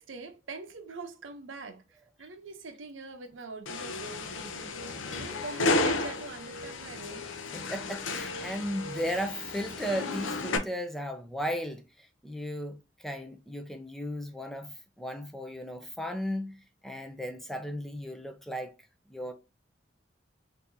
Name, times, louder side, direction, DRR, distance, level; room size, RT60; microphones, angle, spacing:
voice 1, 0.0-7.3, right 3 dB, 85° right, 0.7 m, -43 dB
sound 1, 3.7-10.6, left 2 dB, 85° left, 0.6 m, -33 dB
voice 2, 7.5-18.7 19.1-19.3, equal, ahead, 0.4 m, -36 dB
4.5 x 2.7 x 2.6 m
head